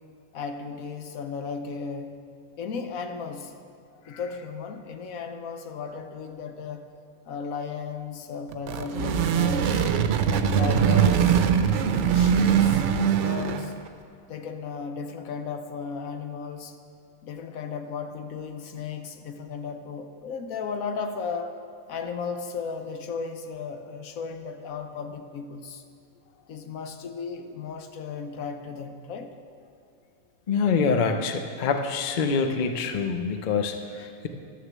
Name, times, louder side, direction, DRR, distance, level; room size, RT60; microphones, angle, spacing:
voice 1, 0.3-2.2 2.6-3.6 4.1-6.9 7.2-9.9 10.3-11.4 12.0-12.8 13.1-13.7 14.3-16.8 17.2-21.6 21.9-25.8 26.5-29.4, left 5 dB, 75° left, 7 dB, 1.2 m, -35 dB
sound 1, 8.5-13.8, right 7 dB, 65° right, 0.9 m, -22 dB
voice 2, 30.5-34.3, left 5 dB, 45° left, 6 dB, 0.7 m, -25 dB
11.5 x 6.6 x 7.3 m, 2.5 s
omnidirectional pair, 1.5 m